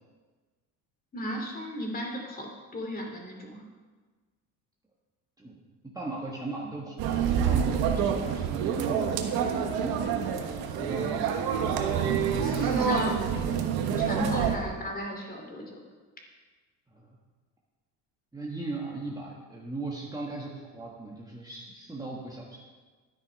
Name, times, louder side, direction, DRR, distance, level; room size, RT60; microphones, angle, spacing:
voice 1, 1.1-3.6 12.4-13.6 14.0-15.8, equal, 25° left, 1 dB, 2.7 m, -35 dB
voice 2, 5.9-7.0 7.2-11.3 14.5-14.7 16.9-17.2 18.3-22.6, right 3 dB, 10° right, -3 dB, 1.4 m, -38 dB
sound 1, 7.0-14.6, right 7 dB, 70° right, 1.4 m, -27 dB
12.0 x 9.5 x 5.3 m, 1.4 s
cardioid pair, 130°, 39 cm